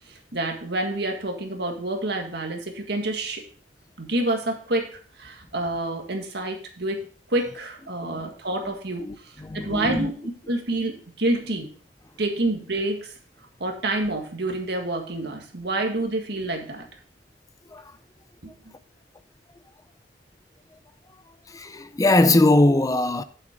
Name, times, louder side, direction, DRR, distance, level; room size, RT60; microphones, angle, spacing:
voice 1, 0.1-3.4 4.0-4.9 5.2-7.0 7.3-10.1 10.5-11.7 12.2-13.1 13.6-16.9, right 2 dB, 65° right, 1.9 m, -28 dB
voice 2, 9.0-10.1 17.7-17.9 21.5-23.2, left 2 dB, 20° left, 0.5 m, -21 dB
9.4 x 7.7 x 3.7 m
head